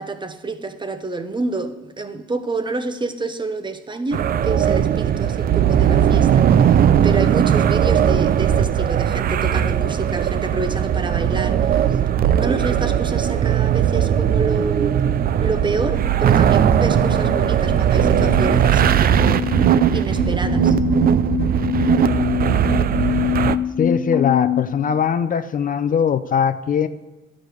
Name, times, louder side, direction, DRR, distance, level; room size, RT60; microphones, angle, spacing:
voice 1, 0.0-11.8 12.2-15.1 15.4-20.8, right 3 dB, 25° right, 0.8 m, -28 dB
sound 1, 4.1-23.6, right 9 dB, 50° right, 0.4 m, -18 dB
sound 2, 15.2-24.6, left 9 dB, 60° left, 1.2 m, -26 dB
voice 2, 23.8-26.9, left 7 dB, 45° left, 0.5 m, -20 dB
11.5 x 5.0 x 6.4 m
cardioid pair, 90°, 20 cm